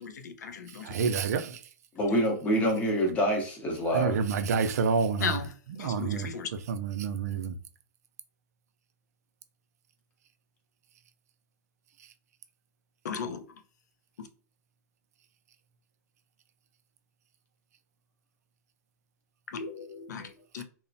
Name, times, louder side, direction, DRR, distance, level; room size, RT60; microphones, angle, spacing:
voice 1, 0.0-1.1 5.2-5.5 5.8-6.5 13.0-13.4 14.2-14.3 19.5-20.6, left 6 dB, 80° left, 0.5 m, -36 dB
voice 2, 0.8-1.6 3.9-5.4 5.7-6.3 6.7-7.5, right 6 dB, 65° right, 0.4 m, -28 dB
voice 3, 2.0-4.2, equal, 15° left, 0.7 m, -26 dB
3.0 x 2.1 x 2.6 m
hypercardioid pair, 155°, 9 cm